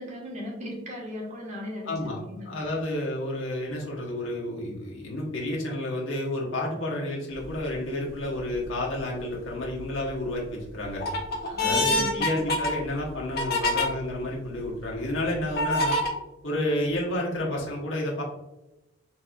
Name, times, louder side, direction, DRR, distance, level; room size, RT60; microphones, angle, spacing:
voice 1, 0.0-2.5 11.4-12.2, left 1 dB, 35° right, -2 dB, 1.2 m, -37 dB
voice 2, 1.9-2.2 2.4-11.0 11.6-16.0 16.4-18.2, left 1 dB, 90° left, -3 dB, 1.1 m, -30 dB
sound 1, 7.4-7.8 8.4-9.0 9.5-10.1 10.6-13.9 14.5-14.6 15.6-16.1, left 2 dB, 55° left, 0.8 m, -26 dB
4.2 x 4.0 x 2.3 m, 0.94 s
head